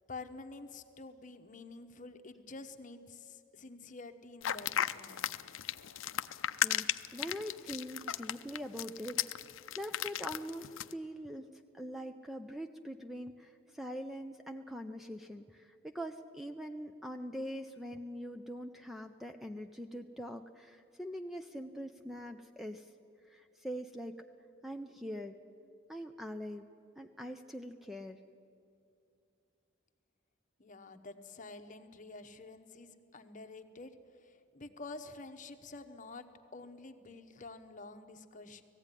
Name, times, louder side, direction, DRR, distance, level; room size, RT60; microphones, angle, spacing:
voice 1, 0.1-5.5 30.6-36.3 36.5-38.6, left 3 dB, 40° left, 8 dB, 1.0 m, -49 dB
sound 1, 4.4-10.9, left 10 dB, 80° left, 0.5 m, -35 dB
voice 2, 6.6-9.4 9.8-11.5 11.7-22.9 23.3-24.2 24.6-25.4 25.9-26.7 27.0-28.2, equal, ahead, 6 dB, 0.5 m, -43 dB
18.5 x 15.0 x 9.8 m, 2.6 s
head